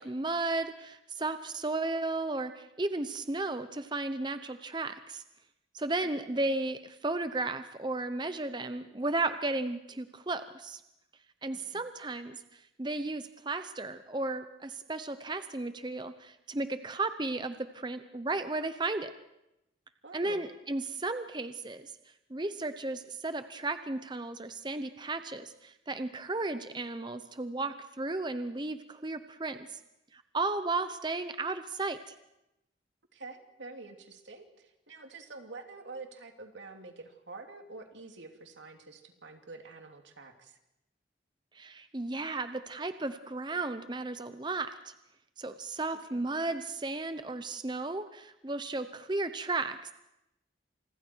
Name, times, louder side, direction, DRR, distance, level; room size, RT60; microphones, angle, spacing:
voice 1, 0.0-5.2 5.7-10.8 11.4-19.1 20.1-21.9 22.3-29.8 30.1-32.1 41.5-44.9 45.4-49.9, right 2 dB, 25° right, 10 dB, 0.8 m, -34 dB
voice 2, 11.5-11.8 20.0-20.4 33.1-40.6 46.1-46.2, right 3 dB, 85° right, 4 dB, 2.9 m, -47 dB
30.0 x 27.5 x 4.6 m, 0.88 s
head